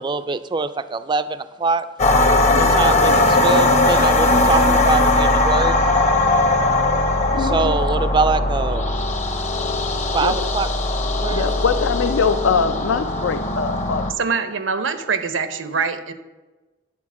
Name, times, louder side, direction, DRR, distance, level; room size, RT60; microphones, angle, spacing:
voice 1, 0.0-1.9 2.6-5.8 7.4-8.9 10.1-10.7 11.2-11.6, right 4 dB, 25° right, 13 dB, 0.3 m, -23 dB
sound 1, 2.0-14.1, left 2 dB, 35° left, 0.8 m, -19 dB
voice 2, 7.3-7.8 10.2-10.5 11.3-14.1, left 5 dB, 80° left, 9 dB, 0.4 m, -23 dB
voice 3, 14.2-16.1, right 5 dB, 85° right, 10 dB, 0.8 m, -24 dB
9.6 x 4.4 x 7.2 m, 1.2 s
head